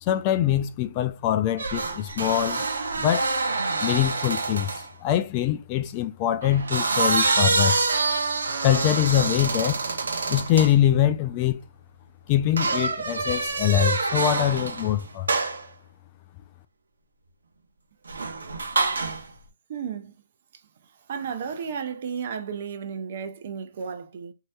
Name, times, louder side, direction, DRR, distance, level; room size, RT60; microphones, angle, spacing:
voice 1, 0.0-2.7 3.0-3.3 3.8-7.8 8.6-9.8 10.3-11.6 12.3-15.3, left 11 dB, 30° left, 0.3 m, -23 dB
sound 1, 1.6-4.9 6.4-10.7 12.6-14.9 15.3-15.7 18.1-19.3, right 3 dB, 75° right, 0.9 m, -26 dB
voice 2, 19.7-20.1 21.1-24.3, right 6 dB, 45° right, 0.7 m, -33 dB
3.1 x 2.8 x 2.3 m
hypercardioid pair, 150°, 0 cm